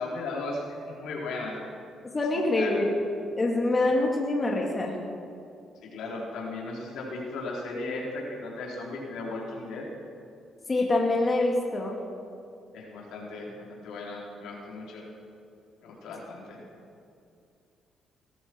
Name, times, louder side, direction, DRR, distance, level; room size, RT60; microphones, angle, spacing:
voice 1, 0.0-1.6 2.3-2.8 5.9-9.9 12.7-15.0 15.8-16.6, left 2 dB, 85° left, -3 dB, 4.2 m, -36 dB
voice 2, 2.1-4.9 10.7-11.9, left 2 dB, 30° left, -1 dB, 2.5 m, -25 dB
20.0 x 14.0 x 4.7 m, 2.5 s
cardioid pair, 90°, 0 cm